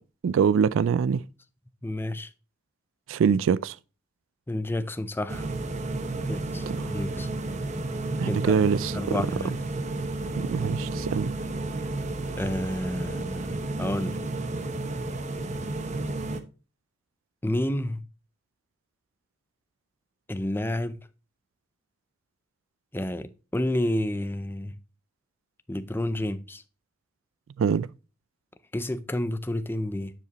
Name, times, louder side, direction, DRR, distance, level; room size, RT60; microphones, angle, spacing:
voice 1, 0.2-1.2 3.1-3.8 6.7-6.9 8.2-9.2 10.4-11.3 27.6-27.9, right 6 dB, 70° right, 0.3 m, -24 dB
voice 2, 1.8-2.3 4.5-5.5 6.3-7.3 8.2-8.5 8.9-9.6 12.4-14.2 17.4-18.0 20.3-21.0 22.9-24.7 25.7-26.6 28.7-30.1, left 1 dB, 10° left, 0.4 m, -30 dB
sound 1, 5.3-16.4, right 2 dB, 35° right, 0.8 m, -32 dB
9.5 x 5.1 x 3.0 m
head